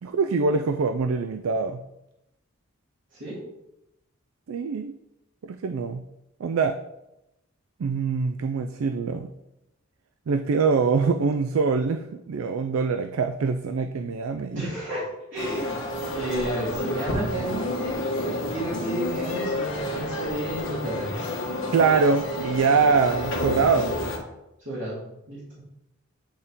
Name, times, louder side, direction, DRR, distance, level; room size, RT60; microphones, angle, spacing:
voice 1, 0.0-1.8 4.5-5.0 5.4-6.0 6.4-6.8 7.8-9.3 10.3-14.7 21.7-23.9, right 4 dB, 70° right, 8 dB, 0.4 m, -24 dB
voice 2, 3.1-3.4 14.5-15.8 16.1-18.0 18.5-21.3 24.6-25.6, right 1 dB, 55° right, -10 dB, 2.3 m, -32 dB
sound 1, 15.4-24.2, left 1 dB, 60° left, 1.4 m, -30 dB
8.9 x 4.1 x 3.6 m, 0.89 s
head